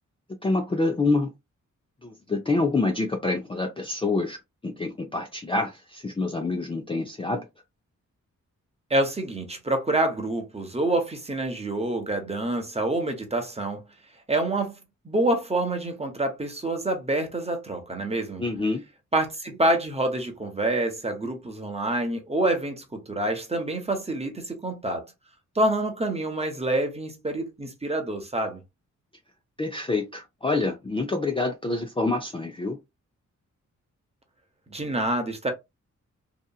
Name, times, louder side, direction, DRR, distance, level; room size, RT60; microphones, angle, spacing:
voice 1, 0.4-1.3 2.0-4.4 4.6-7.4 18.4-18.8 29.6-32.8, left 3 dB, 20° left, 0.4 m, -26 dB
voice 2, 8.9-13.8 14.3-14.8 15.0-18.4 19.1-25.1 25.5-28.6 34.7-35.5, right 1 dB, 20° right, 0.9 m, -27 dB
2.8 x 2.4 x 2.3 m
wide cardioid pair, 90°, 31 cm